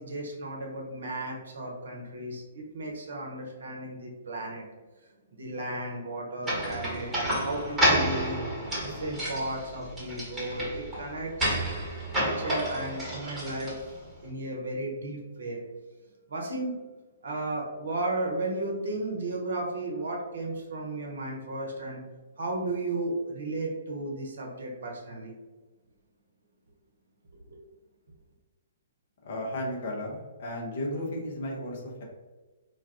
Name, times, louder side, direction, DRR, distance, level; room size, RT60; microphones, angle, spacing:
voice 1, 0.0-4.6 5.3-8.4 8.8-11.6 12.1-13.7 14.2-15.6 16.3-16.8 17.2-22.0 22.4-25.3 27.5-27.6, right 2 dB, 60° right, -1 dB, 0.8 m, -34 dB
sound 1, 6.4-14.1, equal, 10° right, 1.1 m, -30 dB
voice 2, 29.2-32.0, left 1 dB, 50° left, -1 dB, 0.8 m, -34 dB
2.5 x 2.3 x 3.5 m, 1.2 s
figure-of-eight pair, 120°, 0 cm